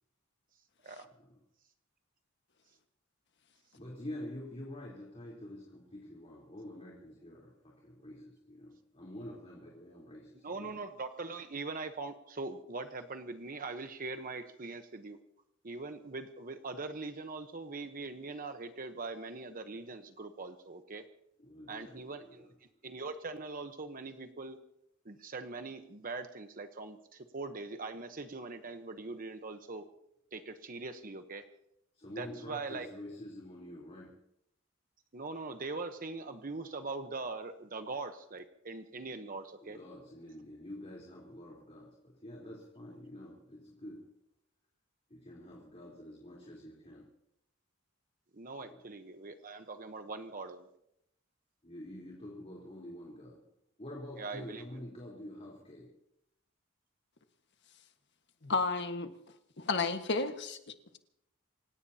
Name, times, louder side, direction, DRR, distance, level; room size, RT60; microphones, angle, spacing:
voice 1, 3.7-10.7 21.4-22.5 31.9-34.2 39.6-44.1 45.1-47.1 48.6-48.8 51.6-53.5 53.8-55.9, left 1 dB, 30° left, -4 dB, 3.7 m, -47 dB
voice 2, 10.4-15.2 15.6-21.0 21.7-22.5 22.8-24.6 25.0-29.8 30.3-31.4 32.2-32.9 35.1-39.8 48.3-50.7 54.2-54.6, right 3 dB, 45° right, 7 dB, 1.0 m, -42 dB
voice 3, 58.4-59.1 59.6-60.6, left 4 dB, 60° left, 6 dB, 1.5 m, -31 dB
28.0 x 17.5 x 2.9 m, 0.78 s
head